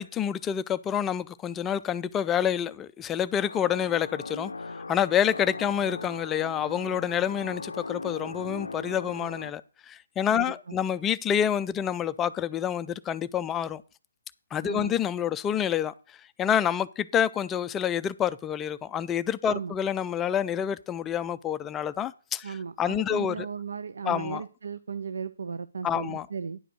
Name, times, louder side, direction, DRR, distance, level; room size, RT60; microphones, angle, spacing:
voice 1, 0.0-13.8 14.5-23.5 24.0-24.4 25.8-26.3, left 9 dB, 15° left, 0.4 m, -28 dB
sound 1, 3.4-9.5, left 3 dB, 80° left, 0.5 m, -39 dB
voice 2, 14.6-14.9 19.5-19.7 22.4-26.6, right 6 dB, 70° right, 0.5 m, -36 dB
10.0 x 5.0 x 6.4 m
figure-of-eight pair, 145°, 0 cm